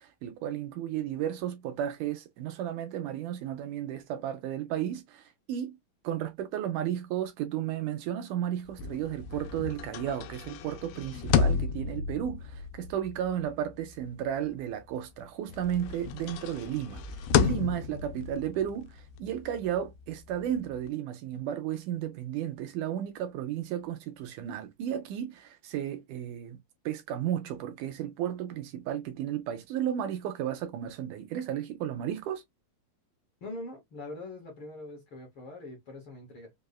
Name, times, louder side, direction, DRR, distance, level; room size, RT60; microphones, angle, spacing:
voice 1, 0.0-5.8 6.0-26.6 26.9-32.4, right 10 dB, 80° right, 2.0 m, -33 dB
sound 1, 8.7-15.2 15.5-20.9, left 7 dB, 90° left, 2.3 m, -32 dB
voice 2, 33.4-36.5, left 2 dB, 55° left, 1.7 m, -43 dB
5.4 x 2.3 x 2.2 m
omnidirectional pair, 3.8 m